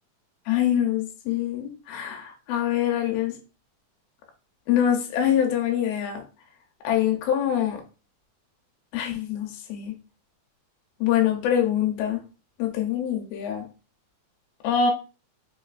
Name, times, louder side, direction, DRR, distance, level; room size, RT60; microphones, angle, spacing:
voice 1, 0.5-3.4 4.7-6.2 6.8-7.8 8.9-9.9 11.0-12.2 12.6-13.7 14.6-14.9, left 9 dB, 85° left, 2.5 m, -24 dB
5.6 x 2.4 x 2.3 m
omnidirectional pair, 4.2 m